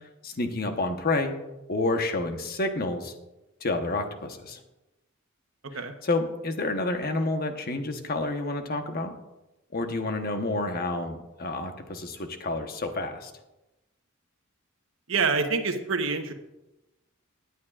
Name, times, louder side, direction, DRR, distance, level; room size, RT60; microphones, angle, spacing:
voice 1, 0.2-1.3 1.7-3.1 3.6-4.6 5.7-9.1 9.7-13.3, left 2 dB, 50° left, 5 dB, 1.1 m, -29 dB
voice 2, 15.1-16.3, right 4 dB, 70° right, 6 dB, 1.1 m, -26 dB
18.5 x 9.5 x 2.5 m, 0.97 s
head